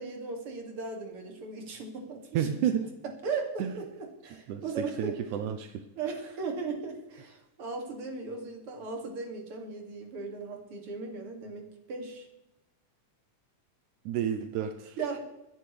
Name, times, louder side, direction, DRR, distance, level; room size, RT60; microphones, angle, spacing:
voice 1, 0.0-2.9 3.2-5.2 6.0-12.3 15.0-15.2, right 4 dB, 45° right, 2 dB, 3.0 m, -37 dB
voice 2, 2.3-2.9 3.6-3.7 4.5-5.9 14.1-15.0, right 9 dB, 80° right, 8 dB, 2.0 m, -31 dB
24.0 x 10.5 x 3.3 m, 0.92 s
omnidirectional pair, 3.9 m